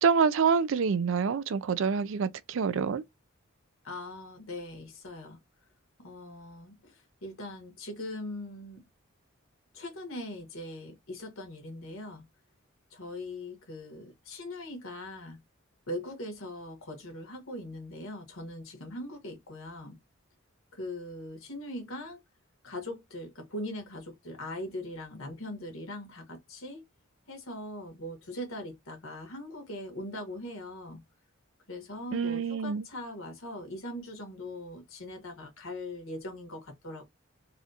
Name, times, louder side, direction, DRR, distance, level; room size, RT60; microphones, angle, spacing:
voice 1, 0.0-3.0 32.1-32.8, right 6 dB, 65° right, 0.4 m, -26 dB
voice 2, 3.8-5.4 6.0-8.9 9.7-12.3 12.9-15.4 15.9-20.0 20.7-22.2 22.6-26.8 27.3-31.0 31.7-37.1, left 1 dB, 80° left, 1.6 m, -41 dB
4.0 x 2.4 x 2.8 m
head